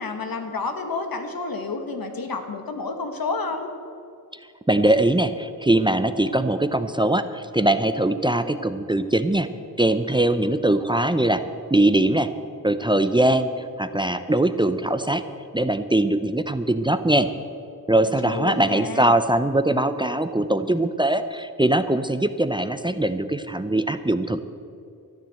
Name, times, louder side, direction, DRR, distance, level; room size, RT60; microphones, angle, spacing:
voice 1, 0.0-3.7 18.0-19.2, left 3 dB, 75° left, 5 dB, 1.6 m, -30 dB
voice 2, 4.7-9.5 9.8-11.4 11.7-12.3 12.6-15.2 15.5-17.3 17.9-24.4, right 1 dB, 15° right, 10 dB, 0.6 m, -21 dB
13.0 x 10.0 x 7.7 m, 2.4 s
wide cardioid pair, 80°, 36 cm